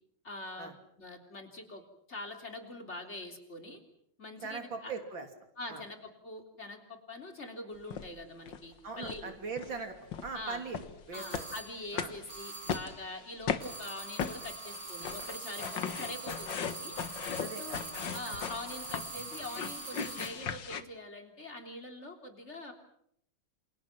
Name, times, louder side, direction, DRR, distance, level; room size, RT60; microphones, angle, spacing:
voice 1, 0.2-0.7 1.0-1.8 2.1-3.8 4.2-4.9 5.6-9.4 10.3-10.6 11.1-17.0 17.6-17.8 18.1-22.7, left 2 dB, 30° left, 4 dB, 3.9 m, -44 dB
voice 2, 4.4-5.3 5.7-5.8 8.8-10.0 10.2-11.5 11.9-12.1 17.4-17.6 18.3-18.4, right 4 dB, 65° right, 5 dB, 3.7 m, -40 dB
sound 1, 7.9-8.1 8.5-8.7 9.0-9.2 9.6-9.8 10.1-20.8, left 7 dB, 65° left, 2.0 m, -38 dB
sound 2, 11.1-11.8 12.3-13.0 13.6-20.5, right 3 dB, 40° right, 3.3 m, -43 dB
28.0 x 27.5 x 6.1 m, 0.70 s
omnidirectional pair, 2.3 m